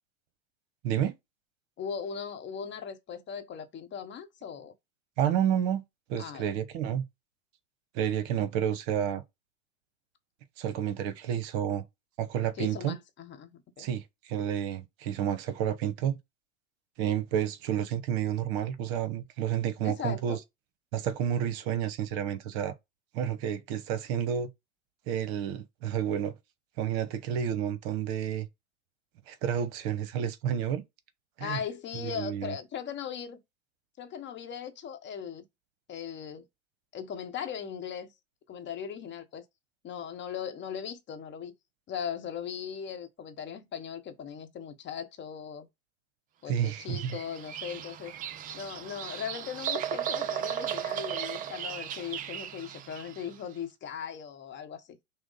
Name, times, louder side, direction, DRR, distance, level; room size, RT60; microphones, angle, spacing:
voice 1, 1.8-4.7 6.2-6.5 12.5-13.9 19.8-20.4 31.4-33.4 34.0-35.4 35.9-36.5 36.9-38.1 38.5-39.4 39.8-41.5 41.9-45.7 46.4-48.2 48.5-55.0, left 8 dB, 30° left, 0.9 m, -38 dB
voice 2, 5.2-5.8 6.1-7.0 7.9-9.2 10.6-11.8 12.2-13.0 13.8-16.2 17.0-20.4 20.9-22.7 23.1-24.5 25.1-26.3 26.8-28.5 29.3-30.8 31.4-31.6 32.1-32.5 46.5-47.1, right 9 dB, 50° right, 0.9 m, -30 dB
Bird vocalization bird call bird song, 46.7-53.3, right 10 dB, 20° right, 0.4 m, -36 dB
6.0 x 2.1 x 4.0 m
hypercardioid pair, 100°, 39 cm